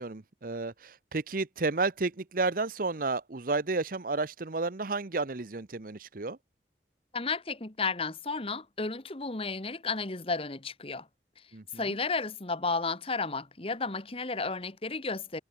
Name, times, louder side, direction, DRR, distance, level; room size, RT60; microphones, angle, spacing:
voice 1, 0.0-6.4 11.5-11.8, right 3 dB, 50° right, 0.9 m, -32 dB
voice 2, 7.1-11.1 11.7-15.4, left 4 dB, 30° left, 1.5 m, -33 dB
head